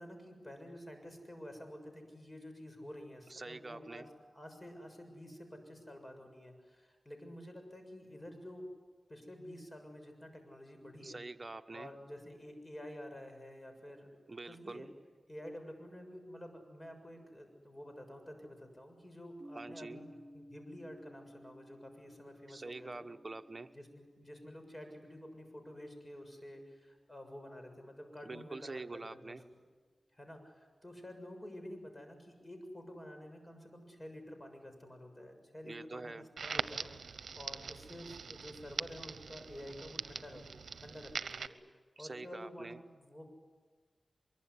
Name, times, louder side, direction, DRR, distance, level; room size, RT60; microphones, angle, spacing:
voice 1, 0.0-4.0 4.3-8.7 9.1-11.2 11.7-14.9 15.3-23.0 23.7-29.4 30.1-40.4 40.8-41.6 42.0-43.3, equal, 25° left, 6 dB, 7.1 m, -50 dB
voice 2, 3.3-4.1 11.0-11.9 14.3-14.9 19.5-20.0 22.5-23.7 28.2-29.4 35.6-36.3 42.0-42.8, right 3 dB, 40° right, 8 dB, 1.2 m, -45 dB
sound 1, 19.4-27.2, equal, ahead, 5.5 m, -58 dB
Crackle, 36.4-41.5, right 5 dB, 85° right, 0.8 m, -42 dB
24.0 x 22.5 x 9.9 m, 1.4 s
cardioid pair, 50°, 0 cm